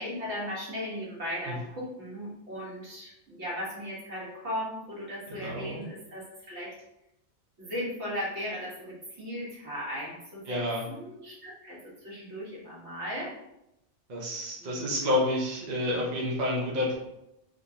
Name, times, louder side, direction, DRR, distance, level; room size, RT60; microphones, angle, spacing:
voice 1, 0.0-6.7 7.6-13.3 14.6-14.8, equal, 75° right, -5 dB, 1.6 m, -37 dB
voice 2, 5.4-5.8 10.5-10.8 14.1-16.9, left 1 dB, 45° right, -3 dB, 0.9 m, -29 dB
3.7 x 3.6 x 2.7 m, 0.85 s
omnidirectional pair, 1.2 m